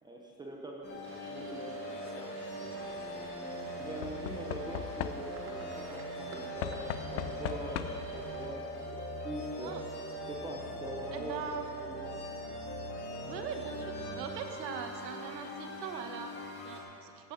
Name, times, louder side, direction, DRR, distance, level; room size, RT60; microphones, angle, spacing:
voice 1, 0.0-1.8 3.8-9.8 10.3-11.4 11.7-12.2, right 1 dB, 10° right, -1 dB, 0.8 m, -43 dB
sound 1, 0.8-16.8, equal, 20° left, 2.1 m, -41 dB
sound 2, 1.0-8.5, right 2 dB, 25° right, 1.7 m, -50 dB
Knock / Wood, 1.8-2.3 4.0-5.6 6.6-8.2 9.2-9.3 9.6-9.7, left 10 dB, 75° left, 0.8 m, -39 dB
voice 2, 11.1-11.6 13.2-17.3, right 7 dB, 90° right, 5 dB, 1.5 m, -41 dB
15.5 x 11.5 x 4.1 m, 2.8 s
supercardioid pair, 145°, 49 cm